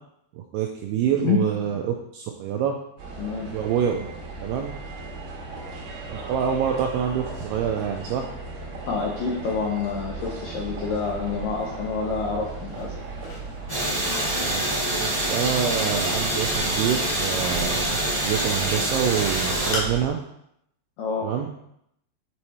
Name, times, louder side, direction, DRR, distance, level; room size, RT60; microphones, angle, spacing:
voice 1, 0.3-2.7 3.5-4.1 4.4-4.7 6.1-8.2 14.4-20.2 21.2-21.5, right 8 dB, 85° right, 2 dB, 2.3 m, -26 dB
sound 1, 3.0-20.1, right 3 dB, 70° right, 2.6 m, -36 dB
voice 2, 3.2-3.5 8.9-12.9 21.0-21.3, left 5 dB, 80° left, -4 dB, 1.9 m, -27 dB
sound 2, 12.7-20.2, left 2 dB, 65° left, 1.7 m, -40 dB
sound 3, 13.7-19.7, right 1 dB, 40° right, 0.5 m, -26 dB
7.5 x 3.1 x 4.2 m, 0.75 s
omnidirectional pair, 5.1 m